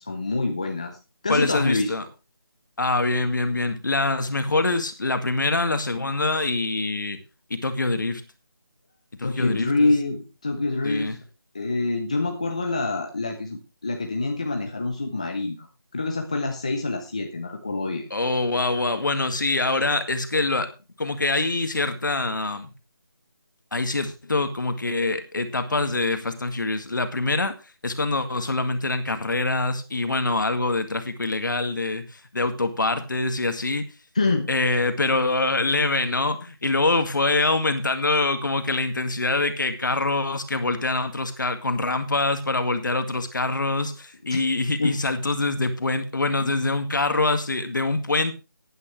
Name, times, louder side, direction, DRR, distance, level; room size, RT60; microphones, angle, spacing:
voice 1, 0.1-1.0 1.2-2.1 9.2-11.2 11.5-15.7 15.9-18.1 34.1-34.5 43.8-43.9 44.3-44.4 44.8-45.0, left 3 dB, 15° left, 0.7 m, -26 dB
voice 2, 1.3-2.1 2.8-7.2 7.5-8.2 9.2-9.7 10.8-11.2 18.1-20.7 21.0-22.7 23.7-27.6 27.8-33.9 34.5-48.3, left 2 dB, 55° left, 1.9 m, -24 dB
15.5 x 9.5 x 3.2 m
figure-of-eight pair, 180°, 13 cm